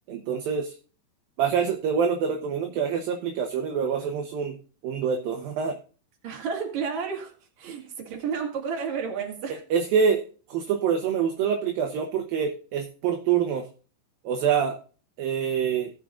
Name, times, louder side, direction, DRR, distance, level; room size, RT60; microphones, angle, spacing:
voice 1, 0.1-0.8 1.4-4.6 4.8-5.8 9.7-13.7 14.2-14.8 15.2-15.9, right 7 dB, 70° right, 3 dB, 2.5 m, -26 dB
voice 2, 6.2-7.3 7.6-9.6, right 6 dB, 45° right, 1 dB, 3.2 m, -31 dB
18.5 x 7.3 x 2.4 m, 0.38 s
omnidirectional pair, 4.9 m